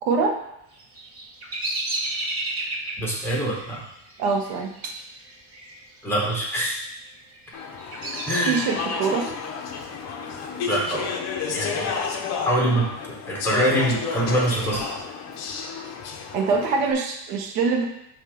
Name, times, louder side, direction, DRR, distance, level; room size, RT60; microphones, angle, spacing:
voice 1, 0.0-0.4 4.2-4.9 8.5-9.3 16.3-17.8, right 4 dB, 80° right, 2 dB, 1.2 m, -24 dB
Bird vocalization bird call bird song, 0.7-5.8 6.0-6.6 7.2-9.2, right 2 dB, 30° right, 1.2 m, -32 dB
voice 2, 3.0-3.8 6.0-6.8 8.3-8.6 10.7-11.1 11.5-12.0 12.4-12.9 13.3-14.8, right 1 dB, 5° left, -4 dB, 1.3 m, -24 dB
Speech / Chatter, 7.5-16.9, left 5 dB, 35° left, 0.7 m, -31 dB
6.8 x 2.9 x 4.9 m, 0.77 s
cardioid pair, 150°, 48 cm